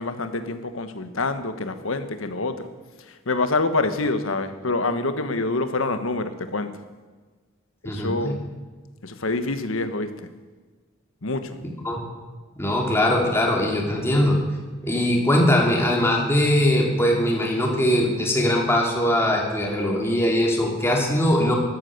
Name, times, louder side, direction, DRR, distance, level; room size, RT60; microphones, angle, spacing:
voice 1, 0.0-2.7 3.1-6.7 7.8-8.4 9.0-10.1 11.2-11.6, left 3 dB, 75° left, 9 dB, 1.3 m, -26 dB
voice 2, 7.8-8.3 11.8-12.0 12.6-14.4 14.8-21.5, left 1 dB, 10° left, -1 dB, 3.1 m, -21 dB
14.5 x 12.5 x 6.6 m, 1.3 s
head